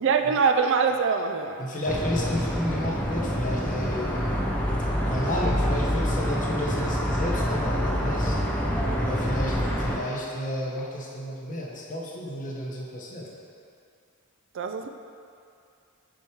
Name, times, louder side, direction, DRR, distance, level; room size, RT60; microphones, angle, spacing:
voice 1, 0.0-1.6 14.5-14.9, right 5 dB, 55° right, 7 dB, 0.3 m, -23 dB
voice 2, 1.6-4.3 5.1-8.4 8.9-13.3, left 1 dB, 35° left, -3 dB, 1.0 m, -32 dB
sound 1, 1.9-10.0, equal, 5° left, 0.6 m, -26 dB
6.3 x 4.5 x 4.8 m, 2.5 s
head